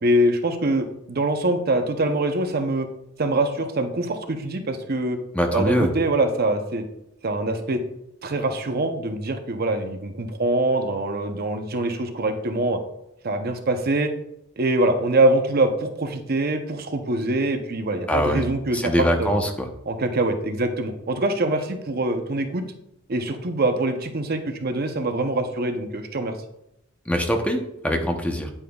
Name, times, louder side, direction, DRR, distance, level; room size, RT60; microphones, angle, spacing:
voice 1, 0.0-2.9 3.2-5.2 5.5-6.8 7.2-7.8 8.2-12.8 13.2-14.1 14.6-18.9 19.2-19.4 19.9-22.6 23.1-26.4, right 2 dB, 50° right, 6 dB, 0.7 m, -24 dB
voice 2, 5.3-5.9 18.1-18.5 18.7-19.7 27.1-28.5, equal, 5° left, 4 dB, 0.8 m, -23 dB
9.5 x 8.8 x 2.3 m, 0.84 s
head